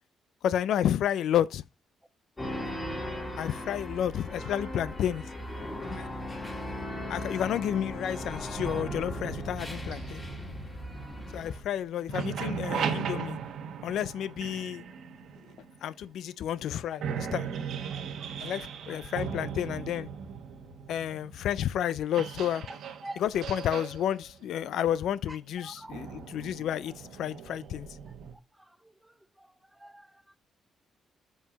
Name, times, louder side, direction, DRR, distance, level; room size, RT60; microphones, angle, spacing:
voice 1, 0.4-1.6 3.4-5.3 5.9-6.1 7.1-10.2 11.3-13.4 13.8-14.8 15.8-17.5 18.4-20.1 20.9-22.7 23.2-27.9, left 10 dB, 75° left, 0.3 m, -31 dB
sound 1, 2.4-11.6, left 1 dB, 20° left, 2.8 m, -38 dB
sound 2, 8.6-11.7 12.0-15.9 16.6-16.7 17.0-28.3, right 7 dB, 75° right, 1.1 m, -38 dB
voice 2, 17.8-18.5 19.0-19.1 22.7-22.8 23.0-23.2 25.3-26.0 28.6-29.1 29.4-30.1, right 1 dB, 5° right, 0.5 m, -47 dB
7.3 x 5.6 x 2.9 m
cardioid pair, 90°, 0 cm